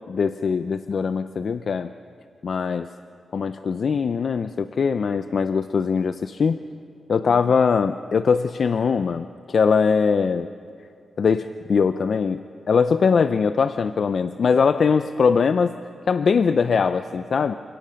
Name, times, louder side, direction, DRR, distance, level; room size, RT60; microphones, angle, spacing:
voice 1, 0.1-1.9 2.4-2.9 3.3-6.6 7.1-10.5 11.2-15.8 16.1-17.5, left 5 dB, 55° left, 11 dB, 0.5 m, -21 dB
28.5 x 17.5 x 6.4 m, 2.3 s
wide cardioid pair, 135°, 0 cm